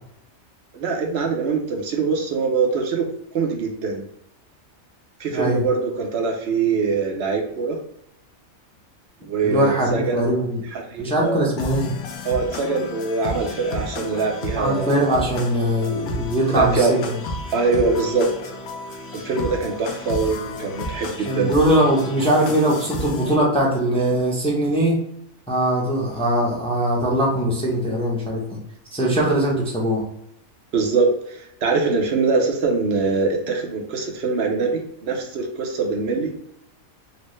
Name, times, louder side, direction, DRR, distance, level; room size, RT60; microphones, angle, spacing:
voice 1, 0.7-4.0 5.2-7.8 9.2-10.2 10.7-11.5 12.2-15.0 16.5-16.9 17.5-18.3 19.1-21.5 30.7-36.3, right 4 dB, 60° right, 2 dB, 0.8 m, -23 dB
voice 2, 5.3-5.6 9.4-10.6 11.0-11.9 14.6-17.0 21.2-25.0 25.5-28.6 28.9-30.1, right 1 dB, 10° left, -3 dB, 0.3 m, -21 dB
sound 1, 11.6-23.4, left 2 dB, 90° left, 1.1 m, -32 dB
4.2 x 2.1 x 3.1 m, 0.75 s
omnidirectional pair, 1.5 m